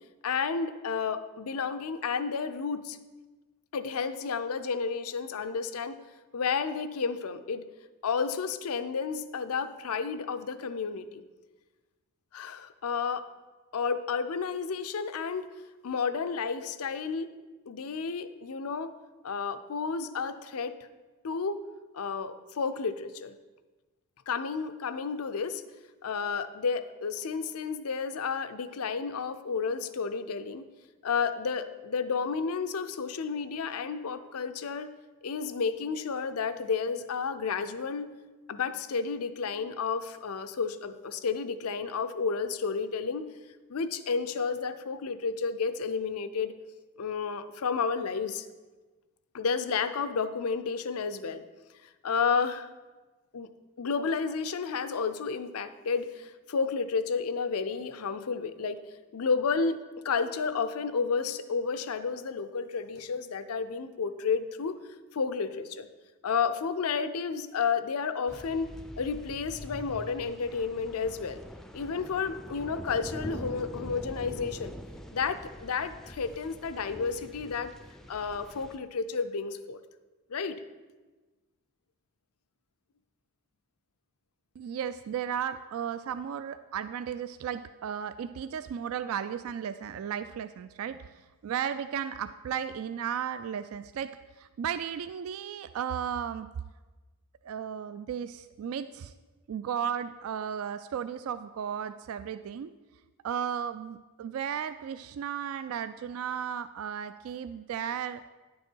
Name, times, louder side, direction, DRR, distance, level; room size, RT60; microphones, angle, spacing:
voice 1, 0.2-3.0 3.7-6.0 6.3-7.6 8.0-11.2 12.3-13.3 13.7-15.5 15.8-17.3 17.7-18.9 19.2-20.7 21.2-21.6 21.9-23.3 24.3-25.6 26.0-30.7 31.0-34.9 35.2-38.1 38.5-43.2 43.7-46.5 47.0-48.5 49.3-51.4 52.0-52.7 53.3-53.5 53.8-58.8 59.1-59.8 60.0-64.8 65.1-65.9 66.2-68.7 69.0-71.4 71.7-74.7 75.1-77.7 78.1-79.8 80.3-80.6, left 5 dB, 90° left, 11 dB, 0.5 m, -31 dB
sound 1, 68.3-78.8, equal, ahead, 0.4 m, -44 dB
voice 2, 84.6-91.1 91.4-94.1 94.4-96.5 97.4-99.1 99.5-102.7 103.2-108.2, right 8 dB, 75° right, 12 dB, 0.3 m, -34 dB
10.5 x 6.3 x 4.5 m, 1.2 s
head